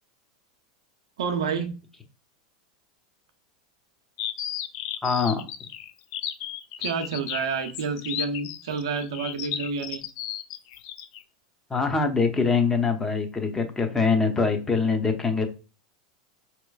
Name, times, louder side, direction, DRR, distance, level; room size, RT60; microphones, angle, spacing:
voice 1, 1.2-1.7 6.8-10.0, right 5 dB, 75° right, 0.7 m, -29 dB
sound 1, 4.2-11.2, left 11 dB, 60° left, 0.4 m, -34 dB
voice 2, 5.0-5.5 11.7-15.5, left 4 dB, 15° left, 0.8 m, -23 dB
4.4 x 3.0 x 2.3 m
hypercardioid pair, 100°, 3 cm